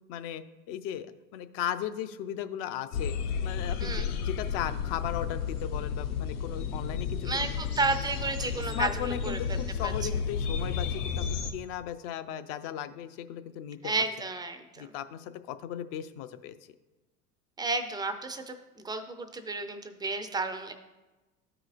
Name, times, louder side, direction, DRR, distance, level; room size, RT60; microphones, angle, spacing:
voice 1, 0.1-1.1 1.3-3.1 3.4-7.5 8.5-11.2 11.5-13.9 14.8-16.5, left 10 dB, 50° left, 11 dB, 0.6 m, -36 dB
sound 1, 2.9-11.5, left 6 dB, 65° left, 0.9 m, -32 dB
voice 2, 7.2-10.1 13.8-14.9 17.6-20.7, right 3 dB, 10° right, 7 dB, 0.4 m, -32 dB
14.0 x 4.9 x 2.4 m, 1.1 s
hypercardioid pair, 80°, 48 cm